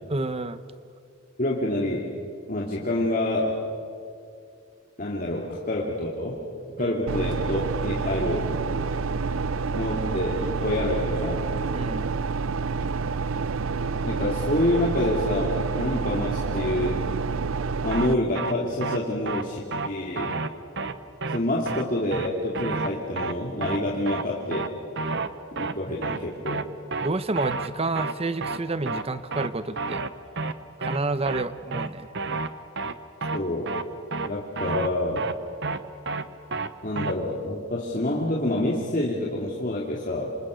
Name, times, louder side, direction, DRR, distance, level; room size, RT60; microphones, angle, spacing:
voice 1, 0.1-0.6 6.8-7.0 11.7-12.1 25.9-26.0 27.0-30.0 30.8-32.1, right 2 dB, 30° right, 13 dB, 0.9 m, -29 dB
voice 2, 1.4-2.1 2.5-3.6 5.0-6.4 6.8-8.5 9.7-11.5 14.0-17.0 17.8-20.3 21.3-24.7 25.6-26.6 33.3-33.7 34.3-35.3 36.8-40.4, left 1 dB, 40° left, -3 dB, 2.5 m, -27 dB
sound 1, 7.1-18.1, right 4 dB, 85° right, 0.6 m, -28 dB
sound 2, 17.9-18.1 18.3-18.5 18.8-19.0 19.3-19.4 19.7-19.9 20.2-20.5 20.8-20.9 21.2-21.4 21.7-21.8 22.1-22.3 22.5-22.9 23.2-23.3 23.6-23.8 24.1-24.2 24.5-24.7 25.0-25.3 25.6-25.7 26.0-26.2 26.5-26.6 26.9-27.1 27.4-27.7 27.9-28.1 28.4-28.6 28.9-29.0 29.3-29.5 29.8-30.1 30.4-30.5 30.8-31.0 31.3-31.4 31.7-31.9 32.1-32.5 32.8-32.9 33.2-33.4 33.7-33.8 34.1-34.3 34.6-34.9 35.2-35.3 35.6-35.8 36.1-36.2 36.5-36.7 37.0-37.1, right 3 dB, 60° right, 1.0 m, -29 dB
27.0 x 27.0 x 6.4 m, 2.4 s
head